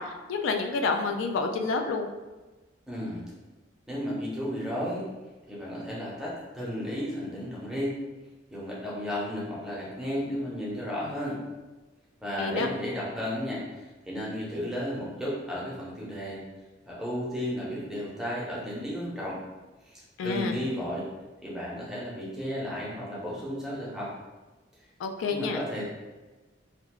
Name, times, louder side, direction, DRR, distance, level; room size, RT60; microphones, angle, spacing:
voice 1, 0.0-2.1 12.4-12.7 20.2-20.6 25.0-25.6, left 4 dB, 85° left, 5 dB, 0.3 m, -29 dB
voice 2, 2.9-3.2 3.9-5.0 5.5-7.9 8.5-11.4 12.2-16.4 16.9-19.4 19.8-21.1 21.4-24.1 25.3-25.8, equal, 5° right, -7 dB, 0.5 m, -33 dB
2.4 x 2.2 x 2.9 m, 1.2 s
head